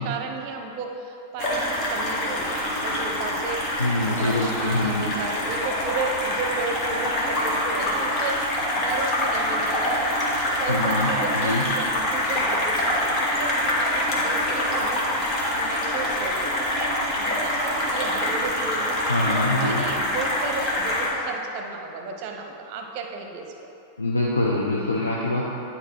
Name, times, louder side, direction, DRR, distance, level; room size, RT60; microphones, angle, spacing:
voice 1, 0.0-19.1 19.6-23.7, right 4 dB, 45° right, 3 dB, 0.8 m, -34 dB
sound 1, 1.4-21.1, left 1 dB, 35° left, 1.6 m, -25 dB
voice 2, 3.8-5.1 10.7-11.6 19.1-19.9 24.0-25.4, left 2 dB, 80° left, -4 dB, 0.7 m, -24 dB
10.0 x 4.2 x 4.5 m, 2.7 s
figure-of-eight pair, 90°, 0 cm